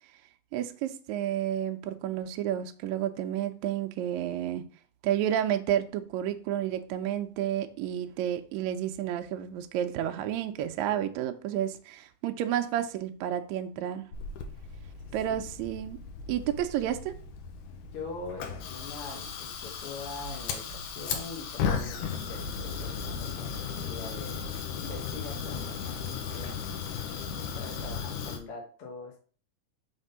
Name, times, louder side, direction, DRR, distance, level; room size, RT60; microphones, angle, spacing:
voice 1, 0.5-4.6 5.0-14.1 15.1-16.0 16.3-17.1, right 11 dB, 80° right, 1.8 m, -31 dB
Fire, 14.1-28.4, left 6 dB, 85° left, 2.4 m, -36 dB
voice 2, 17.9-24.5 24.8-27.2 27.5-29.2, left 4 dB, 55° left, 1.8 m, -43 dB
5.8 x 3.6 x 5.4 m
omnidirectional pair, 3.5 m